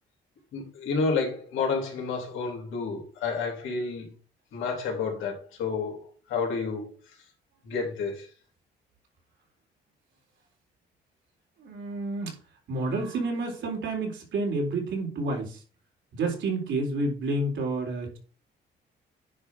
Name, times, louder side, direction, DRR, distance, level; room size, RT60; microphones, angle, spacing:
voice 1, 0.5-4.2 4.5-6.9 7.6-8.3, left 4 dB, 85° left, 3.5 m, -30 dB
voice 2, 11.6-12.4 12.7-15.6 16.1-18.2, right 2 dB, 70° right, 3.9 m, -29 dB
10.0 x 3.5 x 5.9 m
cardioid pair, 90°, 20 cm